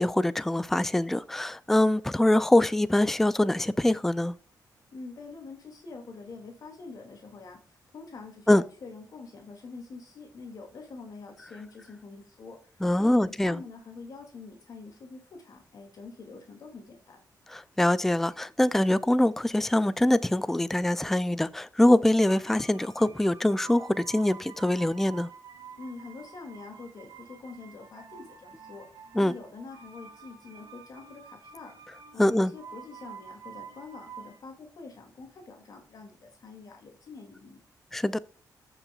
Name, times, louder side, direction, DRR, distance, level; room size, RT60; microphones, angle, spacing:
voice 1, 0.0-4.3 8.5-8.6 12.8-13.6 17.5-25.3 29.1-29.3 32.2-32.5 37.9-38.2, left 1 dB, 5° left, 0.3 m, -24 dB
voice 2, 4.9-17.2 25.8-37.6, left 4 dB, 60° left, 2.4 m, -45 dB
sound 1, 22.2-34.4, right 6 dB, 70° right, 1.7 m, -49 dB
14.0 x 6.0 x 2.3 m
wide cardioid pair, 130°, 7 cm